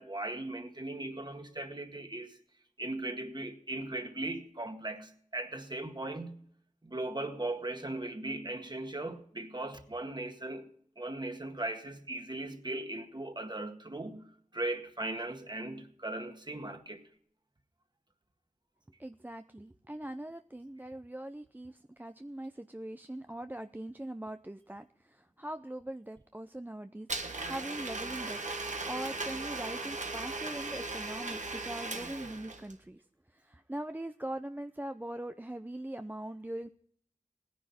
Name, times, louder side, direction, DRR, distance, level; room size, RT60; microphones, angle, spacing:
voice 1, 0.0-2.4 2.8-6.3 6.8-10.7 11.0-14.3 14.5-17.0, right 2 dB, 35° right, 1.8 m, -38 dB
voice 2, 19.0-36.7, right 1 dB, 15° right, 0.5 m, -42 dB
Domestic sounds home sounds, 27.1-32.7, right 3 dB, 75° right, 1.5 m, -38 dB
17.0 x 10.0 x 4.2 m
wide cardioid pair, 45°, 13 cm